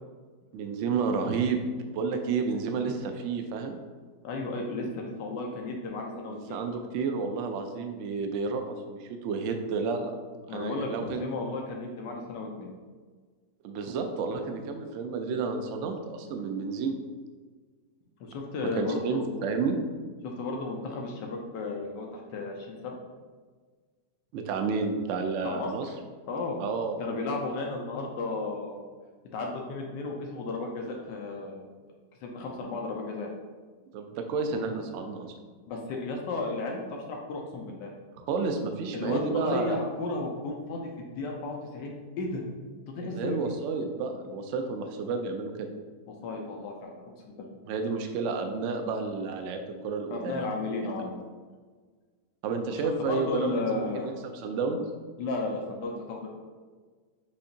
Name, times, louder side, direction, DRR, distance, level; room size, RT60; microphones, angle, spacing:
voice 1, 0.5-1.6 1.9-3.8 6.3-10.1 10.5-11.3 13.6-17.0 18.8-19.8 24.3-25.9 26.6-27.1 33.9-35.3 38.2-39.8 43.1-45.7 47.7-50.4 51.0-51.1 52.4-54.1 54.4-54.8, right 4 dB, 85° right, 5 dB, 0.6 m, -31 dB
voice 2, 4.2-6.6 10.5-12.7 18.2-19.4 20.2-23.0 25.4-25.7 26.3-26.6 27.0-28.8 29.3-31.9 32.2-33.3 35.7-37.9 38.9-42.4 42.9-43.4 46.2-47.5 50.1-51.1 52.8-54.1 55.2-56.3, left 3 dB, 85° left, 1 dB, 1.3 m, -34 dB
6.8 x 2.8 x 2.7 m, 1.5 s
omnidirectional pair, 1.8 m